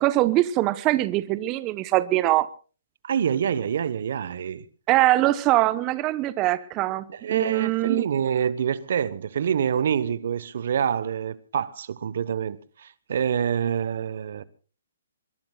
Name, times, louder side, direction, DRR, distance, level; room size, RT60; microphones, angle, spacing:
voice 1, 0.0-2.5 4.9-8.0, right 16 dB, 30° right, 1.0 m, -22 dB
voice 2, 3.0-4.6 7.1-14.4, right 8 dB, 60° right, 1.1 m, -26 dB
26.0 x 22.5 x 2.4 m
hypercardioid pair, 135°, 0 cm